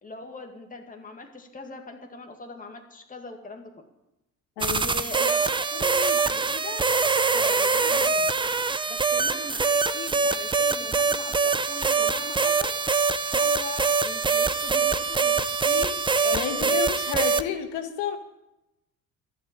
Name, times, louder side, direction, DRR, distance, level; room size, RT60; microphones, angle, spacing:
voice 1, 0.0-3.8 4.6-7.1 7.3-8.3 8.9-12.7 13.3-16.0 16.2-16.8, left 3 dB, 15° left, 3 dB, 2.0 m, -40 dB
sound 1, 4.6-17.4, right 4 dB, 10° right, 0.5 m, -24 dB
voice 2, 16.3-18.2, left 8 dB, 65° left, 7 dB, 1.8 m, -30 dB
12.5 x 7.4 x 8.7 m, 0.93 s
hypercardioid pair, 60°, 46 cm